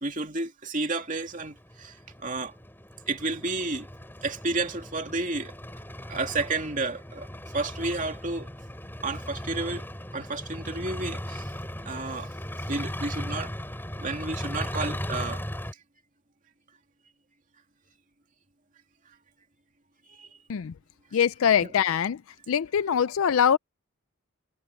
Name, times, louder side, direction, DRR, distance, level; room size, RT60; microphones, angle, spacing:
voice 1, 0.0-2.5 3.1-3.9 4.2-5.5 6.1-8.5 9.0-9.8 10.1-11.5 11.8-12.3 12.7-13.5 14.0-15.4 20.1-20.4 21.6-21.7, right 3 dB, 35° right, 2.7 m, -31 dB
sound 1, 1.2-15.7, equal, 10° left, 6.3 m, -37 dB
voice 2, 21.1-22.2 22.5-23.6, left 8 dB, 70° left, 0.4 m, -23 dB
head